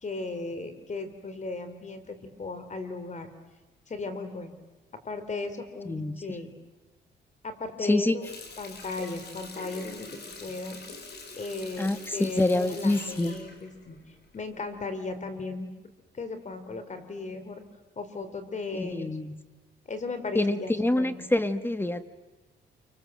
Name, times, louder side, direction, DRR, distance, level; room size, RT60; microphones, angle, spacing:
voice 1, 0.0-3.3 3.9-4.5 5.0-6.5 7.4-8.3 8.6-10.8 11.4-14.0 14.3-15.7 16.1-17.6 18.0-19.1 19.9-21.3, left 3 dB, 35° left, 10 dB, 3.7 m, -36 dB
voice 2, 7.8-8.1 11.8-13.4 18.7-19.3 20.3-22.0, left 2 dB, 10° left, 11 dB, 1.7 m, -26 dB
Water tap faucet, 8.2-14.6 15.0-15.2, left 3 dB, 55° left, 5.3 m, -44 dB
29.0 x 24.5 x 7.7 m, 1.2 s
cardioid pair, 90°, 20 cm